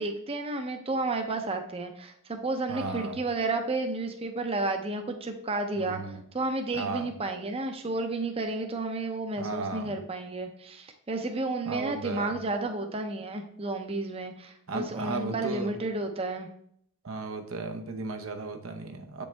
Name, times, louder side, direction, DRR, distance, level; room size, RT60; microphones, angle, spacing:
voice 1, 0.0-16.5, right 2 dB, 30° right, 5 dB, 0.6 m, -32 dB
voice 2, 2.7-3.2 5.8-6.2 6.7-7.1 9.4-9.9 11.7-12.3 14.7-15.7 17.0-19.2, right 3 dB, 80° right, 5 dB, 0.8 m, -35 dB
7.7 x 5.3 x 3.4 m, 0.69 s
head